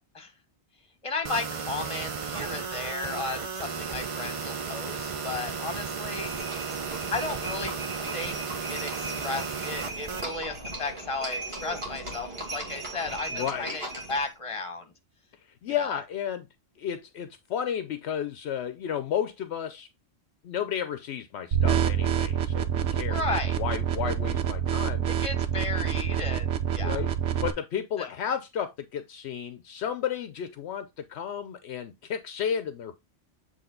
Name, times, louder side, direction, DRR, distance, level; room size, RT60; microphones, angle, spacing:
voice 1, 1.0-6.3 7.1-7.7 8.1-8.4 8.7-14.9 15.7-16.0 23.1-23.6 25.1-27.0, left 3 dB, 30° left, 1.3 m, -34 dB
sound 1, 1.2-10.3, right 5 dB, 40° right, 0.5 m, -34 dB
Livestock farm animals working animals, 6.2-14.3, right 2 dB, 60° right, 2.3 m, -38 dB
voice 2, 13.3-13.8 15.6-16.5 16.8-19.9 20.4-23.2 23.6-25.1 26.8-27.1 27.4-33.0, left 8 dB, 75° left, 0.8 m, -32 dB
sound 2, 21.5-27.5, right 9 dB, 85° right, 1.0 m, -27 dB
7.7 x 3.3 x 3.7 m
omnidirectional pair, 1.2 m